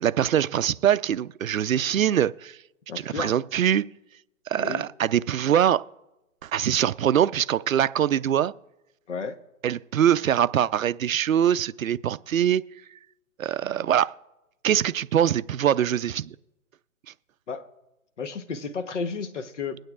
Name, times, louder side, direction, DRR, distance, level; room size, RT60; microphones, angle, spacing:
voice 1, 0.0-2.6 3.2-3.9 4.5-5.8 6.4-8.5 9.6-12.6 13.4-14.1 14.6-16.4, right 10 dB, 70° right, 0.5 m, -23 dB
voice 2, 2.9-3.4 4.6-4.8 9.1-9.4 17.5-17.7 18.2-19.8, left 5 dB, 55° left, 1.1 m, -32 dB
21.5 x 9.0 x 2.4 m
hypercardioid pair, 165°, 43 cm